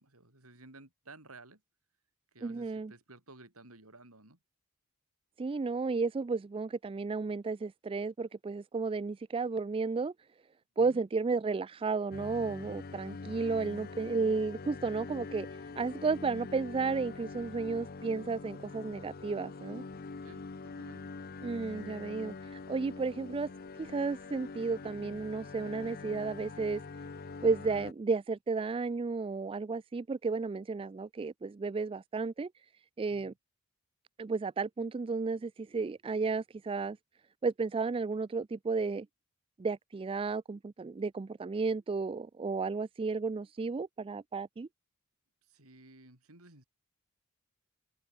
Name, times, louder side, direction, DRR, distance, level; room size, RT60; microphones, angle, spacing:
voice 1, 0.0-1.6 2.3-4.4 10.8-11.0 20.2-21.2 21.4-21.9 33.1-33.3 45.4-46.6, right 2 dB, 75° right, 6.4 m, -55 dB
voice 2, 2.4-2.9 5.4-10.1 10.8-15.5 15.8-19.8 21.4-23.5 23.8-26.8 27.4-32.5 33.0-33.3 34.2-37.0 37.4-39.1 39.6-44.7, right 4 dB, 25° right, 0.3 m, -33 dB
sound 1, 12.1-27.9, left 4 dB, 45° left, 0.6 m, -44 dB
open air
head